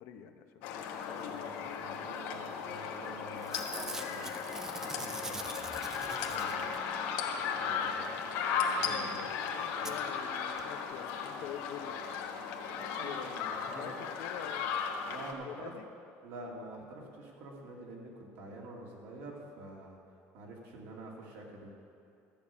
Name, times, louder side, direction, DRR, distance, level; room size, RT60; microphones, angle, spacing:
voice 1, 0.0-1.4 3.8-4.4 6.3-6.5 8.8-11.9 13.0-13.3 13.7-14.7 15.4-15.8, left 9 dB, 60° left, 7 dB, 0.8 m, -47 dB
sound 1, 0.6-15.3, left 6 dB, 80° left, 1.2 m, -36 dB
voice 2, 1.3-4.4 4.7-5.4 6.3-6.7 7.6-8.0 8.7-9.2 9.8-9.9 12.7-14.1 15.1-15.7 16.2-20.0 20.3-21.7, right 2 dB, 65° right, -1 dB, 2.5 m, -48 dB
Packing tape duct tape / Tearing, 2.8-3.1 3.4-7.0 8.9-9.0 9.1-9.2 9.8-9.9 10.6-10.7 10.9-11.0, right 2 dB, 10° right, 0.6 m, -44 dB
13.5 x 6.7 x 8.6 m, 2.5 s
cardioid pair, 180°, 5 cm